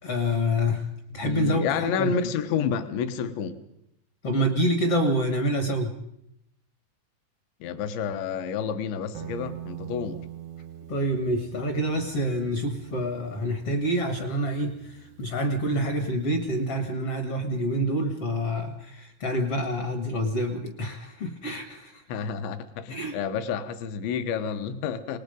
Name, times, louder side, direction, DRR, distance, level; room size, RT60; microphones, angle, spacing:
voice 1, 0.0-0.9 1.1-2.1 4.2-6.0 10.9-22.0 22.9-23.2, equal, 50° left, 1.7 m, -27 dB
voice 2, 1.2-3.6 7.6-10.2 22.1-25.2, left 7 dB, 70° left, 3.4 m, -29 dB
Guitar, 9.1-17.0, right 11 dB, 90° right, 3.9 m, -44 dB
27.0 x 20.0 x 5.3 m
omnidirectional pair, 5.8 m